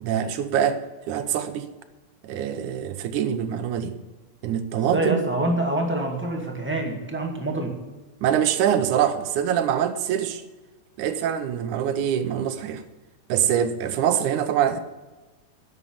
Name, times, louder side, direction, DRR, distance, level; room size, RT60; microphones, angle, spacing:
voice 1, 0.0-1.7 2.2-4.0 4.4-5.2 8.2-10.4 11.0-12.8 13.3-14.8, right 9 dB, 80° right, 2.3 m, -24 dB
voice 2, 4.8-7.7, right 1 dB, 5° right, 1.2 m, -26 dB
11.0 x 7.9 x 8.6 m
omnidirectional pair, 3.5 m